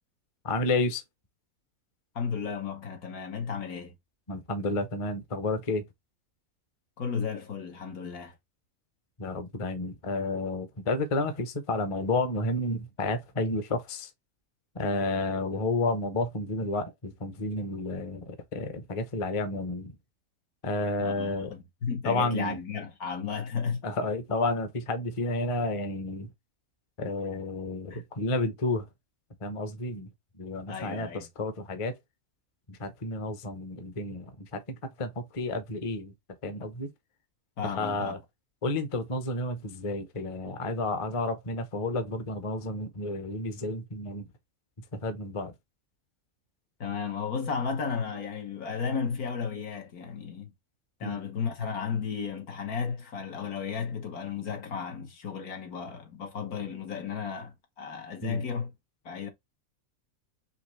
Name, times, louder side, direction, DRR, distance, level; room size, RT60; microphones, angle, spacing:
voice 1, 0.4-1.0 4.3-5.8 9.2-14.1 14.7-20.0 20.6-21.5 22.0-22.6 23.8-26.3 27.0-28.9 29.4-30.1 30.4-31.9 32.7-36.1 36.4-36.9 37.6-38.2 38.6-44.3 44.9-45.5 51.0-51.2 58.2-58.4, left 2 dB, 30° left, 0.6 m, -31 dB
voice 2, 2.2-4.0 7.0-8.4 21.0-23.8 27.9-28.0 30.7-31.3 37.6-38.1 46.8-50.5 51.0-58.7 59.1-59.3, left 6 dB, 85° left, 1.8 m, -34 dB
5.0 x 3.0 x 3.1 m
omnidirectional pair, 1.5 m